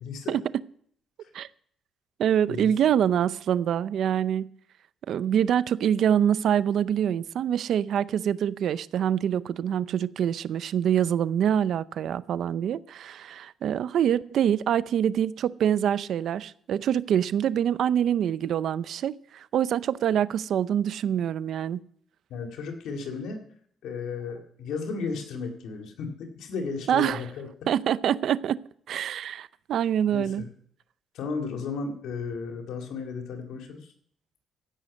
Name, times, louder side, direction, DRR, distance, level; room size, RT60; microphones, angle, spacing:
voice 1, 0.0-0.4 2.5-2.7 22.3-23.4 23.8-27.5 30.1-30.5 31.1-33.8, left 4 dB, 80° left, 3 dB, 2.2 m, -34 dB
voice 2, 2.2-4.5 5.1-21.8 26.9-27.2 27.7-28.6 28.9-30.4, right 9 dB, 70° right, 17 dB, 0.5 m, -25 dB
15.5 x 6.4 x 8.4 m, 0.63 s
cardioid pair, 90°, 0 cm